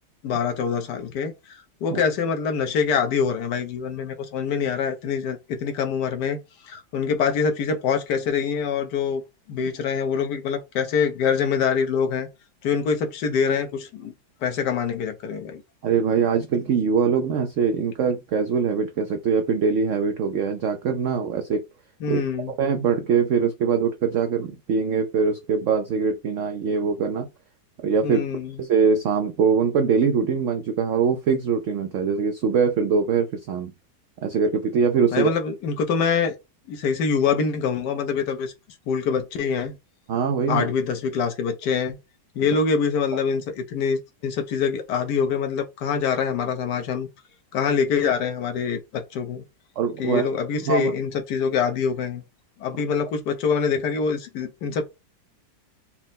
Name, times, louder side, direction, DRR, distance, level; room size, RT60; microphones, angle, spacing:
voice 1, 0.2-9.2 9.5-12.3 12.6-14.1 14.4-15.6 22.0-22.5 28.0-28.6 35.1-36.4 36.7-38.5 38.9-39.8 40.5-42.0 42.3-47.1 47.5-49.4 50.0-52.2 52.6-54.8, left 6 dB, 75° left, 1.3 m, -25 dB
voice 2, 15.8-21.6 22.1-22.2 22.6-27.3 27.8-28.2 28.6-33.7 34.2-35.3 40.1-40.7 49.8-50.3 50.7-50.9, right 6 dB, 85° right, 0.6 m, -22 dB
4.3 x 2.0 x 3.9 m
omnidirectional pair, 1.9 m